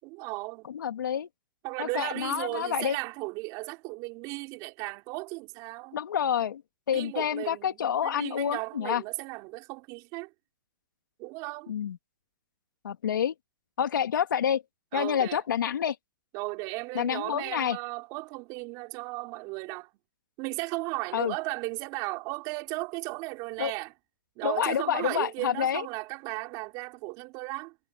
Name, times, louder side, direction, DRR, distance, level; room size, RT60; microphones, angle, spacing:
voice 1, 0.0-0.7 1.6-6.0 6.9-10.3 11.2-11.7 14.9-15.4 16.3-19.9 20.4-23.9 24.4-27.8, right 25 dB, 35° right, 3.7 m, -36 dB
voice 2, 0.7-1.3 1.8-2.9 5.9-6.6 6.9-9.0 11.7-12.0 12.8-13.3 13.8-14.6 14.9-16.0 17.0-17.8 21.1-21.3 23.6-23.7 24.4-25.8, left 9 dB, 80° left, 2.3 m, -28 dB
hypercardioid pair, 150°, 10 cm